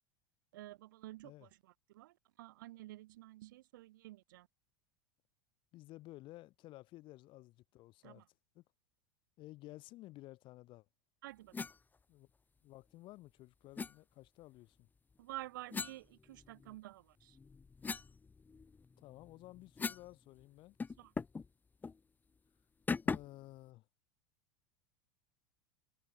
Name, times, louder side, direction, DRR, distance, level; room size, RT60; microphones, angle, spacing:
voice 1, 0.5-4.5 8.0-8.3 11.2-11.5 15.2-17.4 21.0-21.1, right 16 dB, 70° right, 1.8 m, -51 dB
voice 2, 5.7-8.2 8.5-8.6 9.4-10.9 12.1-12.3 12.6-14.9 19.0-20.8 23.0-23.9, left 18 dB, 50° left, 7.4 m, -54 dB
sound 1, 11.5-11.8 13.8-13.9 15.7-16.8 17.2-20.1 20.4-20.5 20.8-21.5 21.8-22.0 22.9-23.4, left 4 dB, 15° left, 1.1 m, -41 dB
hypercardioid pair, 90°, 11 cm